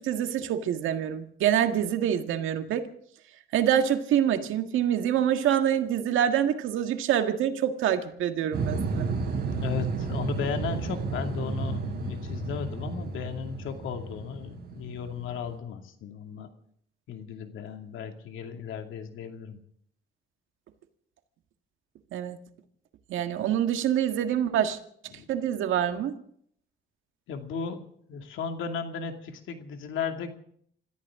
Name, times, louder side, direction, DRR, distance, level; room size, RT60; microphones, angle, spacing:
voice 1, 0.0-2.9 3.5-9.1 22.1-22.4 23.1-24.8 25.3-26.1, right 10 dB, 85° right, 7 dB, 1.8 m, -26 dB
sound 1, 8.5-15.6, right 4 dB, 50° right, 5.6 m, -32 dB
voice 2, 9.5-16.5 17.1-19.6 25.1-25.3 27.3-27.8 28.1-30.3, left 6 dB, 80° left, 5 dB, 2.5 m, -35 dB
27.0 x 14.5 x 3.7 m, 0.63 s
cardioid pair, 90°, 20 cm